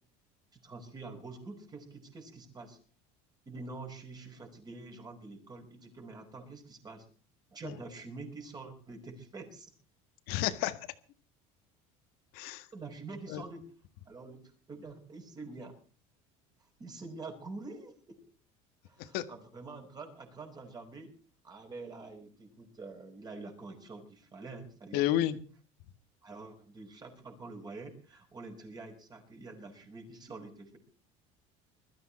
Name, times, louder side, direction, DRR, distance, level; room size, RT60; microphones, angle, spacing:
voice 1, 0.5-2.8 3.5-7.1 7.5-9.7 12.7-13.6 14.1-14.4 14.7-15.7 16.8-18.2 18.9-21.1 21.4-25.3 26.2-30.8, right 3 dB, 25° right, 3 dB, 5.2 m, -46 dB
voice 2, 10.3-10.8 12.3-12.7 13.3-13.4 19.0-19.2 24.9-25.4, left 13 dB, 70° left, 11 dB, 1.7 m, -30 dB
21.5 x 13.5 x 4.3 m, 0.41 s
supercardioid pair, 120°, 16 cm